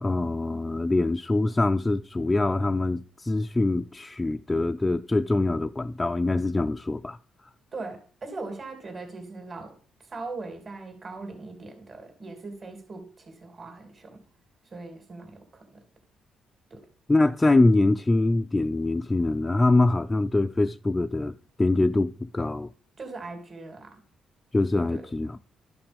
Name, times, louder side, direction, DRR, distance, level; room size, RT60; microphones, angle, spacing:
voice 1, 0.0-7.2 17.1-22.7 24.5-25.4, left 2 dB, 15° left, 0.4 m, -24 dB
voice 2, 7.7-9.8 10.0-14.2 14.6-15.8 16.7-16.9 23.0-24.0 24.9-25.1, right 3 dB, 35° right, 2.8 m, -40 dB
12.0 x 5.8 x 5.3 m
cardioid pair, 90°, 0 cm